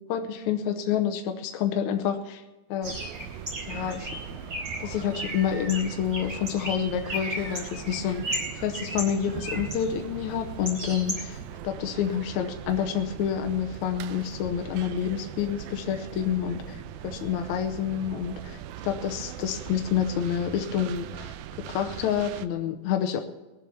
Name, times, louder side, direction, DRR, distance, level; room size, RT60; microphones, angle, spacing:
voice 1, 0.1-2.4 2.7-3.0 3.7-4.1 4.8-23.2, left 9 dB, 70° left, 5 dB, 1.8 m, -28 dB
Bird, 2.8-11.6, right 1 dB, 25° right, 4.9 m, -36 dB
sound 1, 2.8-22.5, right 11 dB, 85° right, 2.5 m, -41 dB
Crying sobbing, 4.8-6.1 7.0-7.9 8.1-8.6 9.3-9.6 11.2-11.3, right 2 dB, 45° right, 3.9 m, -48 dB
20.5 x 7.8 x 7.0 m, 1.2 s
omnidirectional pair, 4.2 m